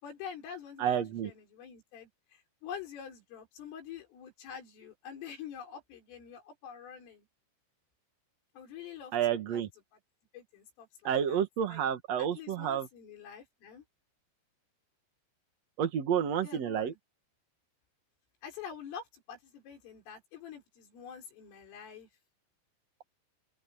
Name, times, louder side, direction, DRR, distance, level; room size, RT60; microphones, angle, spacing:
voice 1, 0.0-7.3 8.6-9.6 10.3-11.4 11.7-11.8 12.2-13.8 16.4-17.0 18.4-22.1, left 7 dB, 85° left, 7.8 m, -46 dB
voice 2, 0.8-1.3 9.1-9.7 11.0-12.9 15.8-16.9, right 9 dB, 75° right, 1.5 m, -30 dB
open air
omnidirectional pair, 5.6 m